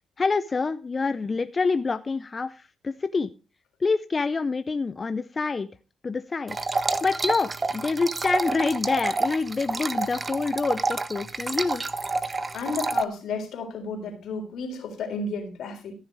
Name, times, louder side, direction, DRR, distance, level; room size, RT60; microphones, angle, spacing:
voice 1, 0.2-3.3 3.8-5.7 6.0-6.6 7.0-11.8, left 4 dB, 30° left, 12 dB, 0.5 m, -26 dB
sound 1, 6.5-13.0, right 3 dB, 25° right, 0.8 m, -28 dB
voice 2, 12.5-15.9, left 4 dB, 70° left, 4 dB, 3.6 m, -32 dB
14.5 x 6.5 x 4.6 m, 0.32 s
cardioid pair, 90°, 0 cm